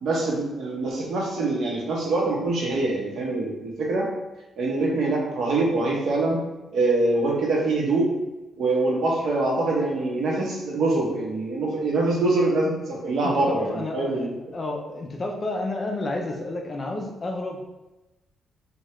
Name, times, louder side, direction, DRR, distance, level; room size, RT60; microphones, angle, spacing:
voice 1, 0.0-4.1 4.6-6.4 6.7-8.2 8.6-14.3, right 2 dB, 60° right, -2 dB, 0.8 m, -24 dB
voice 2, 13.2-17.6, left 2 dB, 30° left, 2 dB, 0.4 m, -31 dB
3.1 x 2.3 x 2.9 m, 1.0 s
cardioid pair, 145°, 0 cm